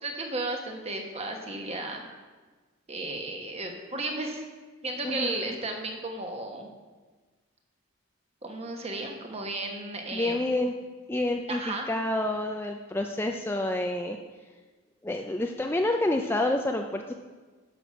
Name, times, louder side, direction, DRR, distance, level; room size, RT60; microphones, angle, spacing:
voice 1, 0.0-2.0 2.9-4.4 4.8-6.7 8.4-10.4 11.5-11.9, right 2 dB, 30° right, 3 dB, 1.2 m, -34 dB
voice 2, 5.0-5.6 10.1-10.7 11.1-14.2 15.0-17.1, left 1 dB, 10° left, 3 dB, 0.4 m, -28 dB
10.0 x 6.1 x 6.1 m, 1.3 s
head